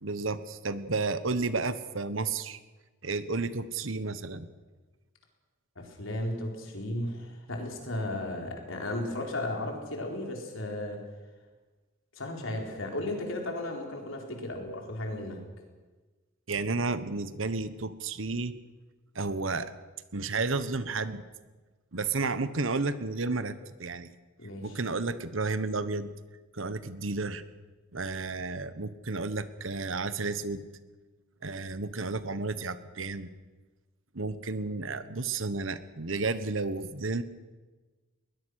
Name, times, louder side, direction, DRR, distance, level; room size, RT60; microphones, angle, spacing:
voice 1, 0.0-2.6 3.0-4.5 16.5-18.5 19.1-19.8 20.1-21.2 21.9-24.1 24.6-26.1 26.5-27.4 27.9-30.7 31.4-33.3 34.1-37.2, right 3 dB, 65° right, 13 dB, 1.2 m, -32 dB
voice 2, 5.8-11.0 12.1-15.4 24.4-24.8, left 1 dB, 70° left, 2 dB, 4.5 m, -35 dB
21.5 x 20.0 x 6.5 m, 1.3 s
head